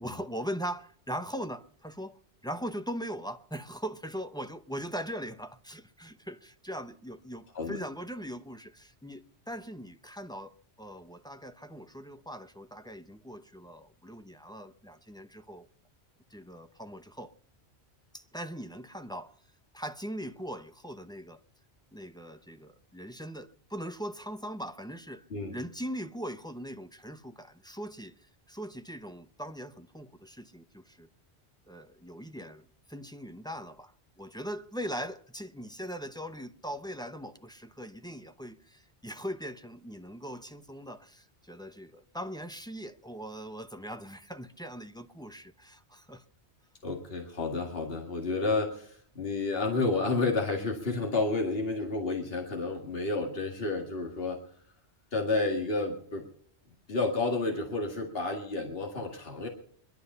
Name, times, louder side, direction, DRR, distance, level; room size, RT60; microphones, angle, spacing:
voice 1, 0.0-2.2 2.4-15.7 16.3-17.3 18.1-19.3 19.7-21.4 21.9-25.2 25.5-28.1 28.5-31.1 31.7-46.2, equal, 5° left, 0.6 m, -40 dB
voice 2, 46.8-54.4 55.1-56.3 56.9-59.5, left 3 dB, 60° left, 2.3 m, -30 dB
21.5 x 12.0 x 5.5 m
omnidirectional pair, 1.1 m